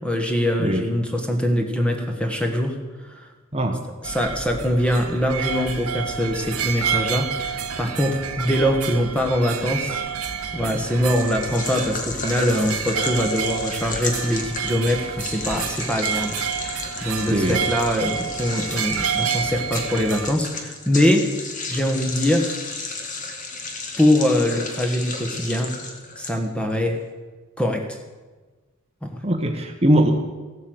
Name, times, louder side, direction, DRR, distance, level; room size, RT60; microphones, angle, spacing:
voice 1, 0.0-2.7 3.1-3.2 4.0-10.0 10.5-16.4 16.6-21.3 21.7-22.6 24.0-25.7 26.2-27.0 27.6-28.0 29.0-29.2, equal, 5° left, 3 dB, 1.4 m, -23 dB
sound 1, 4.0-20.3, right 7 dB, 90° right, 1.1 m, -29 dB
sound 2, 11.1-26.7, left 3 dB, 35° left, 1.7 m, -33 dB
voice 2, 17.3-17.6 29.2-30.1, right 1 dB, 25° right, 4 dB, 1.0 m, -20 dB
15.5 x 8.3 x 7.9 m, 1.3 s
head